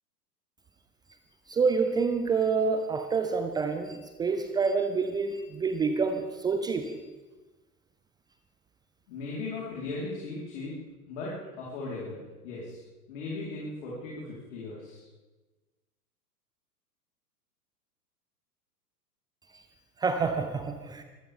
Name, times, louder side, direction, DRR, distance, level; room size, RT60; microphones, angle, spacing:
voice 1, 1.5-7.0 19.5-19.7 20.0-21.0, right 5 dB, 10° right, 7 dB, 0.6 m, -28 dB
voice 2, 9.1-10.7 11.1-12.8 13.1-15.0, left 3 dB, 45° left, -6 dB, 4.6 m, -37 dB
24.5 x 15.5 x 3.7 m, 1.2 s
figure-of-eight pair, 100°, 48 cm